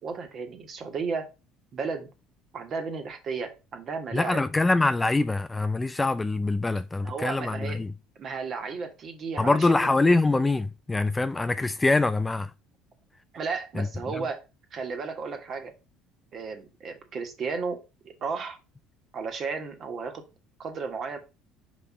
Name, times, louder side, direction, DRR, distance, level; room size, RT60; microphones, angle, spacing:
voice 1, 0.0-1.3 1.7-2.1 2.5-4.4 7.0-7.8 8.2-9.9 13.3-14.4 14.7-15.7 16.3-17.8 18.0-18.6 19.1-20.2 20.6-21.2, right 5 dB, 45° right, 1.6 m, -33 dB
voice 2, 4.1-7.9 9.4-12.5 13.8-13.9, left 2 dB, 15° left, 0.4 m, -24 dB
5.1 x 4.3 x 4.8 m
supercardioid pair, 100°, 0 cm